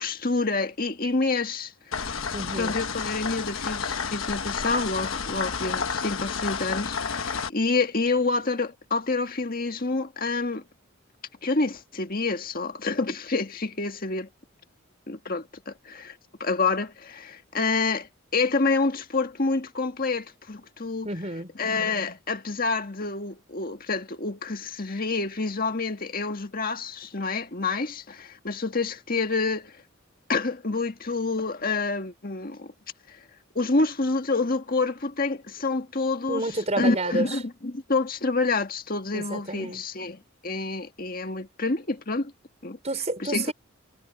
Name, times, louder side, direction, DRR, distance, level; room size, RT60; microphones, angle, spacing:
voice 1, 0.0-10.6 11.4-14.3 15.1-21.1 21.6-29.7 30.3-32.7 33.1-33.2 33.6-36.4 36.8-42.3 42.6-42.8 43.2-43.5, left 3 dB, 45° left, 1.8 m, -28 dB
sound 1, 1.9-7.5, left 5 dB, 75° left, 1.3 m, -30 dB
voice 2, 2.3-2.7 21.0-21.5 36.3-37.3 39.1-39.8 42.8-43.5, right 2 dB, 30° right, 5.0 m, -29 dB
head